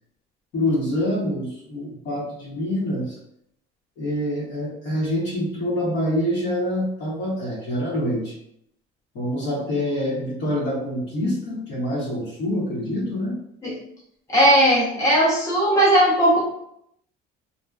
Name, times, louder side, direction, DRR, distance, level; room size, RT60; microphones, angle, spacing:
voice 1, 0.5-3.2 4.0-8.3 9.1-13.4, left 1 dB, 65° left, -4 dB, 1.0 m, -26 dB
voice 2, 14.3-16.4, right 1 dB, 15° left, -6 dB, 0.7 m, -17 dB
2.5 x 2.1 x 2.3 m, 0.74 s
cardioid pair, 140°, 20 cm